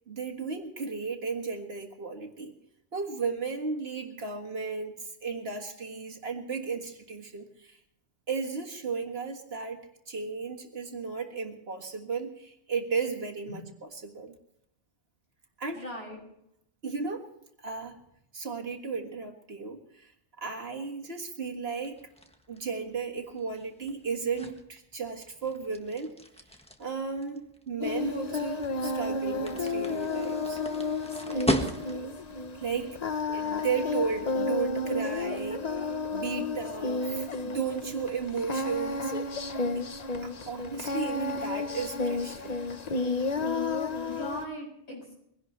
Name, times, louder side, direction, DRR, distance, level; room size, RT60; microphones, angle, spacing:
voice 1, 0.1-2.6 2.9-7.8 8.3-13.6 14.0-14.3 15.6-15.8 16.8-17.3 17.6-18.0 18.3-20.1 20.4-22.0 22.5-26.1 26.8-30.6 31.2-31.7 31.9-32.1 32.5-33.0 33.3-39.1 39.4-39.5 40.2-42.6, right 5 dB, 60° right, 2 dB, 1.9 m, -34 dB
voice 2, 15.7-16.2 44.0-45.1, equal, 65° left, -1 dB, 6.9 m, -39 dB
sound 1, 21.8-32.2, left 1 dB, 5° left, 1.4 m, -37 dB
Singing, 27.8-44.4, left 3 dB, 40° left, 0.9 m, -32 dB
22.5 x 17.0 x 3.2 m, 0.77 s
omnidirectional pair, 1.2 m